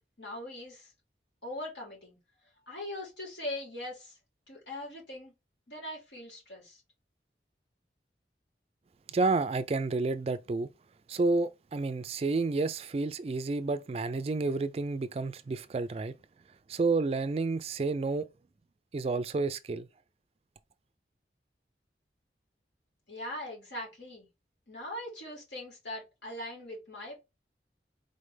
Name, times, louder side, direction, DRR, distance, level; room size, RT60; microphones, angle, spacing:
voice 1, 0.2-0.9 1.4-2.2 2.7-4.2 4.5-5.3 5.7-6.8 23.1-24.3 24.7-27.3, left 1 dB, 85° left, 2.7 m, -41 dB
voice 2, 9.1-10.7 11.1-16.2 16.7-18.3 18.9-19.9, right 3 dB, 35° right, 0.3 m, -30 dB
4.3 x 3.2 x 3.3 m
head